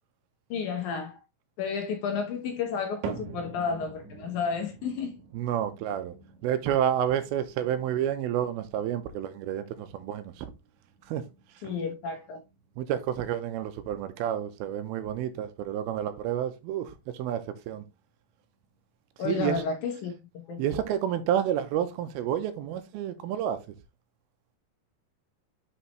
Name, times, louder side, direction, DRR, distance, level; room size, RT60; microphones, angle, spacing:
voice 1, 0.5-1.2 1.6-5.2 11.6-12.4 19.2-20.1 20.5-20.6, left 5 dB, 65° left, 2.1 m, -31 dB
sound 1, 3.0-19.4 19.7-20.2 20.8-20.9 21.7-21.8, right 4 dB, 70° right, 2.2 m, -47 dB
voice 2, 5.3-6.1 6.4-10.5 11.1-11.2 11.6-11.7 12.8-17.8 19.2-19.6 20.6-23.6, right 10 dB, 90° right, 2.7 m, -30 dB
6.3 x 5.7 x 3.0 m
omnidirectional pair, 4.3 m